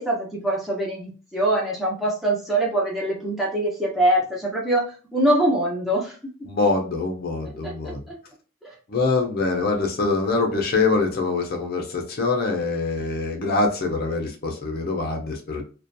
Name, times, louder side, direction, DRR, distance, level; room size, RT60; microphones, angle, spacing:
voice 1, 0.0-6.1 7.6-8.2 8.6-8.7, right 1 dB, ahead, -4 dB, 0.7 m, -24 dB
voice 2, 6.5-8.0 8.9-15.6, left 3 dB, 50° left, 2 dB, 0.5 m, -24 dB
2.4 x 2.2 x 2.5 m, 0.36 s
head